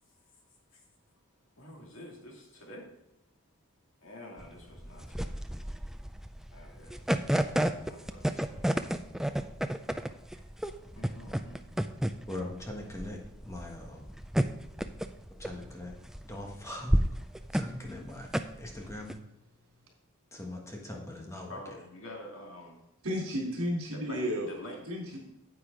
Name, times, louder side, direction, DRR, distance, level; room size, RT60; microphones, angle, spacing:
voice 1, 1.6-2.9 4.0-5.4 6.5-8.7 11.0-11.6 14.4-14.6 21.5-22.8 23.9-24.9, left 1 dB, 65° left, -1 dB, 2.5 m, -48 dB
sound 1, 4.4-19.2, equal, ahead, 0.3 m, -31 dB
voice 2, 12.3-14.1 15.3-15.9 16.3-17.0 17.5-18.3 18.6-19.1 20.3-21.6, left 1 dB, 15° left, 0 dB, 1.4 m, -41 dB
voice 3, 23.0-24.5 24.9-25.2, equal, 70° right, -2 dB, 3.7 m, -32 dB
9.6 x 8.6 x 3.8 m, 0.86 s
head